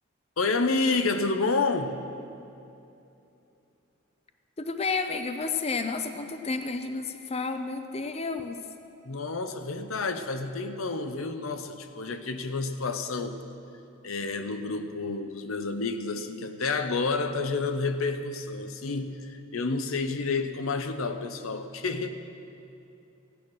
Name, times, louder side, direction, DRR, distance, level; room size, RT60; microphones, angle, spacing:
voice 1, 0.4-2.0 9.0-13.4 14.0-22.1, left 3 dB, 90° left, 8 dB, 0.8 m, -29 dB
voice 2, 4.6-8.6, left 4 dB, 30° left, 7 dB, 0.6 m, -31 dB
15.5 x 9.1 x 6.2 m, 2.7 s
head